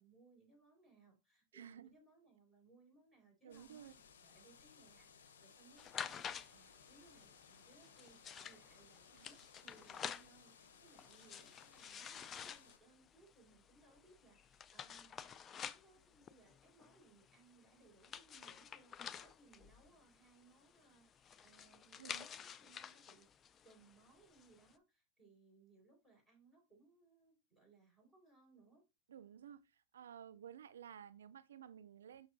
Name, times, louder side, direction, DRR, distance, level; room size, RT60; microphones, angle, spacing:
voice 1, 0.0-23.3 23.6-28.8, right 3 dB, 5° left, 4.4 m, -67 dB
voice 2, 1.5-1.9 3.4-3.9 9.1-9.3 22.0-22.3 29.1-29.6 29.9-32.3, right 9 dB, 90° right, 0.4 m, -54 dB
sound 1, 3.5-12.8, left 6 dB, 85° left, 0.9 m, -63 dB
sound 2, 5.8-24.7, left 8 dB, 25° left, 0.4 m, -51 dB
6.2 x 6.1 x 2.6 m
hypercardioid pair, 125°, 0 cm